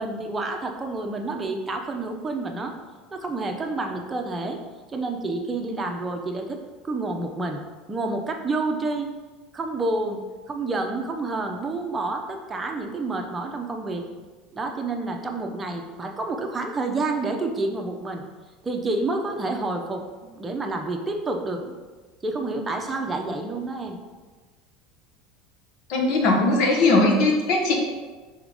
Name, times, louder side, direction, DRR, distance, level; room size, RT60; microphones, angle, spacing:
voice 1, 0.0-2.7 3.1-4.6 4.9-7.6 7.9-9.1 9.5-10.2 10.5-14.1 14.5-18.2 18.6-21.7 22.2-24.0, right 2 dB, 20° right, 3 dB, 0.8 m, -29 dB
voice 2, 25.9-27.7, left 2 dB, 50° left, 1 dB, 1.2 m, -19 dB
6.1 x 3.6 x 5.1 m, 1.3 s
figure-of-eight pair, 70°, 0 cm